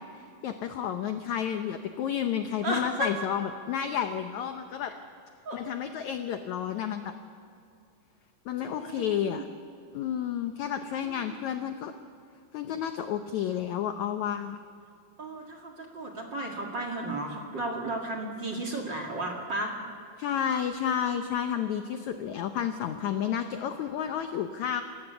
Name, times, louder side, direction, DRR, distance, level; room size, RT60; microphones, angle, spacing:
voice 1, 0.4-4.9 5.5-7.1 8.4-9.4 9.9-11.9 12.5-14.6 20.2-24.8, left 9 dB, 75° left, 7 dB, 1.7 m, -31 dB
voice 2, 2.6-3.1 5.4-5.6 8.6-9.4 11.0-11.4 15.2-19.8, right 1 dB, 35° right, 0 dB, 2.3 m, -34 dB
28.0 x 15.5 x 7.0 m, 2.4 s
omnidirectional pair, 4.3 m